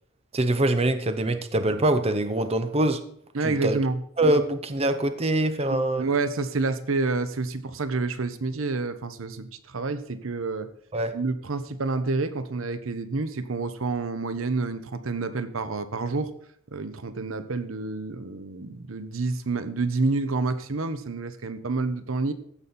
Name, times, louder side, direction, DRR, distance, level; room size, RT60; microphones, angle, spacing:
voice 1, 0.3-3.0 3.4-3.8 4.2-6.1 10.9-11.1, right 1 dB, 30° right, 9 dB, 0.8 m, -24 dB
voice 2, 3.3-4.0 5.7-10.7 11.1-16.3 16.7-22.3, right 3 dB, 85° right, 12 dB, 0.8 m, -28 dB
15.0 x 5.4 x 4.3 m, 0.67 s
head